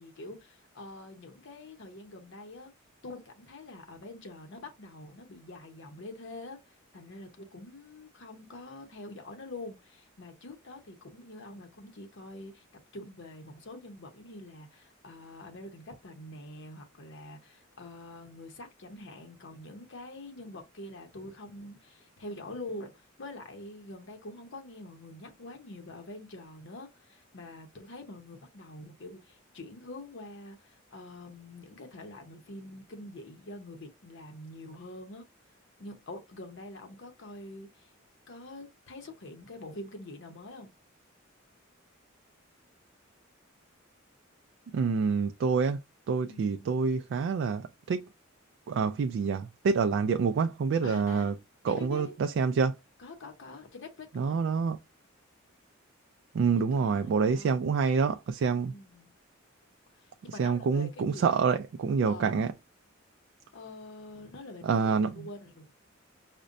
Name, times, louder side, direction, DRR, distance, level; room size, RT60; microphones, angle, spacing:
voice 1, 0.0-2.7 3.0-12.7 12.9-35.2 35.8-37.9 38.3-40.7 46.3-46.7 50.8-51.3 51.6-52.1 53.0-54.4 56.4-57.6 58.7-59.1 60.0-61.5 62.1-62.5 63.5-65.7, left 2 dB, 65° left, 0.8 m, -45 dB
voice 2, 44.7-45.8 46.1-48.1 48.7-51.3 51.6-52.7 54.2-54.8 56.3-58.7 60.4-62.5 64.6-65.1, right 5 dB, 60° right, 0.3 m, -27 dB
5.1 x 2.1 x 2.5 m
head